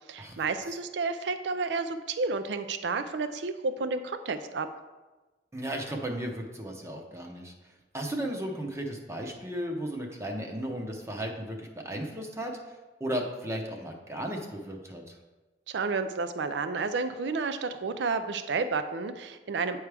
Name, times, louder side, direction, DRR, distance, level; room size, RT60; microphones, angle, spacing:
voice 1, 0.1-4.7 15.7-19.8, right 4 dB, 75° right, 10 dB, 0.4 m, -31 dB
voice 2, 5.5-7.5 7.9-12.7 13.0-15.1, right 1 dB, 15° right, 2 dB, 0.7 m, -35 dB
8.4 x 4.7 x 3.4 m, 1.2 s
head